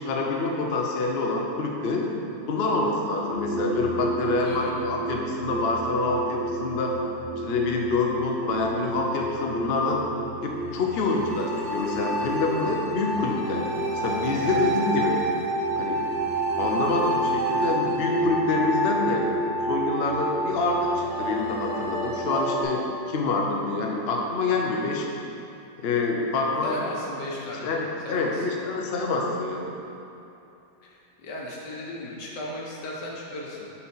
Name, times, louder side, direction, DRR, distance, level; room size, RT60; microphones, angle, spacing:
voice 1, 0.0-2.1 2.5-6.9 7.4-10.0 10.4-13.6 13.9-15.2 15.7-16.0 16.6-19.3 19.7-25.1 25.8-26.8 27.6-29.7, left 3 dB, 55° left, 0 dB, 0.7 m, -26 dB
sound 1, 3.3-22.6, right 1 dB, 50° right, 0.9 m, -29 dB
voice 2, 26.6-28.4 30.8-33.7, left 1 dB, 75° left, -3 dB, 1.7 m, -36 dB
7.2 x 4.4 x 4.5 m, 2.8 s
omnidirectional pair, 1.8 m